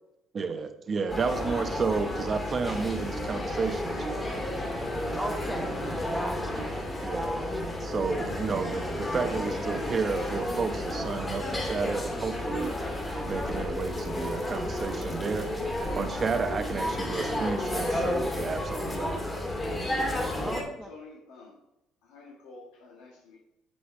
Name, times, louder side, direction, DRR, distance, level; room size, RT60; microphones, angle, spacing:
voice 1, 0.3-4.3 7.0-7.4 7.8-12.7 13.3-15.5 15.9-19.2, right 5 dB, 35° right, 7 dB, 1.1 m, -32 dB
sound 1, 1.1-20.6, left 1 dB, 20° left, 2.6 m, -32 dB
voice 2, 5.2-5.8 6.0-6.8 7.0-7.6 20.4-20.9, right 1 dB, 5° right, 4 dB, 1.2 m, -36 dB
voice 3, 20.6-21.6 22.0-23.4, left 3 dB, 90° left, -2 dB, 1.6 m, -49 dB
9.6 x 7.8 x 3.3 m, 0.87 s
cardioid pair, 100°, 0 cm